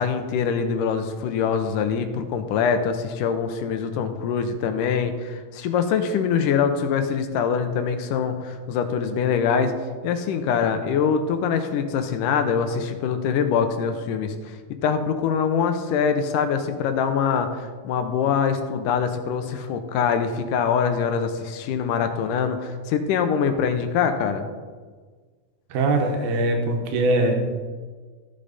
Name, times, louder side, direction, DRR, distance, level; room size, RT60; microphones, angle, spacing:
voice 1, 0.0-9.7 10.0-14.6 14.8-24.5, left 6 dB, 80° left, 8 dB, 2.1 m, -24 dB
voice 2, 25.7-27.4, right 2 dB, 85° right, 2 dB, 3.1 m, -21 dB
14.5 x 6.7 x 4.1 m, 1.5 s
omnidirectional pair, 4.2 m